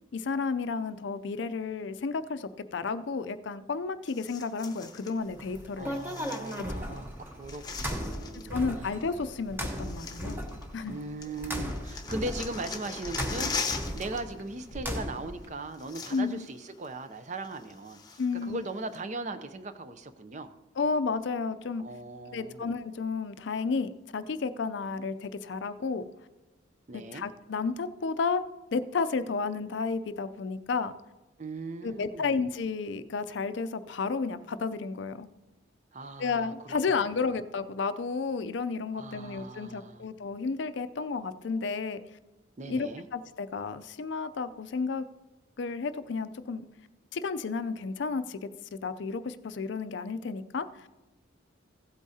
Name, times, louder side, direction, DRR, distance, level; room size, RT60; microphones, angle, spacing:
voice 1, 0.1-6.0 6.6-6.7 8.5-10.5 10.7-10.9 16.1-16.4 18.2-18.7 20.8-21.9 22.3-26.1 26.9-28.4 28.7-30.9 31.8-35.3 36.2-42.0 42.7-45.0 45.6-46.7 47.1-50.9, left 4 dB, 60° left, 13 dB, 0.4 m, -32 dB
sound 1, 4.1-5.1 5.9-7.0 7.2-8.5 9.3-9.4 9.7-10.9 11.2-14.2 14.5-14.7 15.4-15.5 15.7-16.5 16.8-16.9 17.4-18.4 18.9-19.0, left 4 dB, 20° left, 0.8 m, -39 dB
sound 2, 5.2-15.4, equal, 10° right, 0.9 m, -37 dB
voice 2, 5.8-8.6 10.9-18.0 18.4-20.5 21.8-22.7 26.9-27.3 31.4-32.3 35.9-36.5 37.0-37.1 38.9-40.1 42.6-43.1, right 2 dB, 35° right, 11 dB, 0.5 m, -39 dB
15.5 x 8.3 x 2.8 m, 1.1 s
head